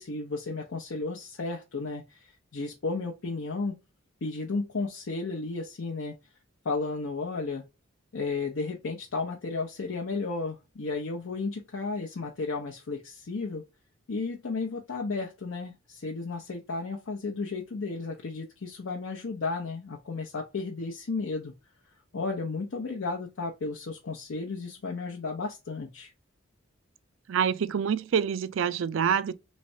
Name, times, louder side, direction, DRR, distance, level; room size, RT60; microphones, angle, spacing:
voice 1, 0.0-3.8 4.2-6.2 6.6-7.6 8.1-13.6 14.1-21.6 22.1-26.1, left 3 dB, 75° left, 0.6 m, -33 dB
voice 2, 27.3-29.3, right 7 dB, 70° right, 0.4 m, -26 dB
3.2 x 3.2 x 2.6 m
head